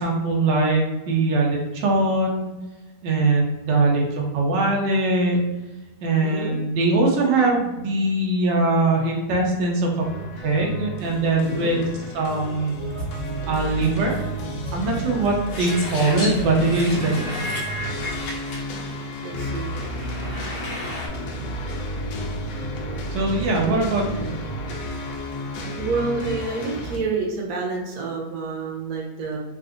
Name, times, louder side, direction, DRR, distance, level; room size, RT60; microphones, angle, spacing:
voice 1, 0.0-2.5 3.0-5.4 6.0-10.1 10.4-11.9 12.1-12.7 13.5-14.2 14.7-17.4 23.1-24.3, right 2 dB, 85° right, 0 dB, 1.3 m, -21 dB
voice 2, 6.2-6.5 11.5-11.8 16.9-17.2 19.2-19.8 25.8-29.4, right 4 dB, 65° right, -1 dB, 1.1 m, -29 dB
sound 1, 10.0-27.0, equal, 90° left, 1.3 m, -32 dB
sound 2, 12.8-19.2, right 6 dB, 40° left, 1.5 m, -35 dB
sound 3, 15.5-21.1, left 1 dB, 70° left, 0.5 m, -33 dB
3.7 x 2.5 x 2.4 m, 1.1 s
omnidirectional pair, 1.9 m